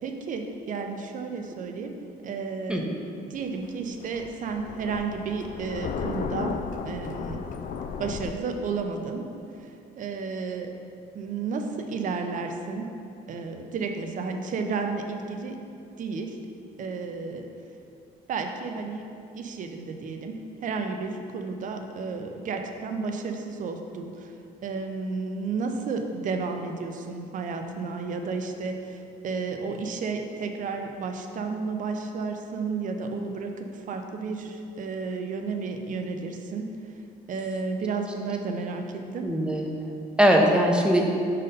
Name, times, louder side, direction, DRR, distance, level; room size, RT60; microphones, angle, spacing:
voice 1, 0.0-1.9 2.2-2.9 3.2-6.6 6.8-7.4 8.0-9.3 9.6-10.7 11.1-12.9 13.3-15.6 16.0-16.4 16.8-17.5 18.3-19.1 19.3-24.3 24.6-36.7 37.3-39.3, right 4 dB, 50° right, 5 dB, 0.6 m, -32 dB
Thunder, 3.3-8.3, left 6 dB, 50° left, 0.4 m, -34 dB
voice 2, 39.2-41.0, equal, 5° right, 0 dB, 0.7 m, -21 dB
5.3 x 4.2 x 5.2 m, 2.6 s
cardioid pair, 110°, 17 cm